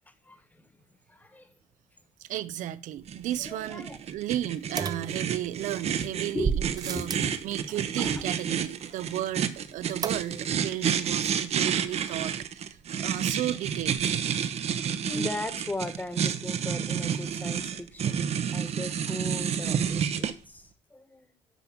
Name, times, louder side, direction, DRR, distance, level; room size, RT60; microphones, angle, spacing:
voice 1, 0.1-0.7 1.1-1.5 3.4-4.0 6.3-6.6 6.9-7.3 7.7-8.2 11.5-11.6 14.6-18.2 18.5-21.3, left 2 dB, 10° left, 1.4 m, -38 dB
voice 2, 2.2-7.1 7.4-14.0, right 13 dB, 75° right, 0.6 m, -34 dB
sound 1, 3.1-20.3, right 8 dB, 55° right, 0.9 m, -30 dB
sound 2, 4.8-5.7 6.4-7.4 10.0-10.6 10.9-11.0 11.3-11.4, right 6 dB, 30° right, 0.5 m, -32 dB
10.0 x 3.5 x 7.2 m
cardioid pair, 105°, 13 cm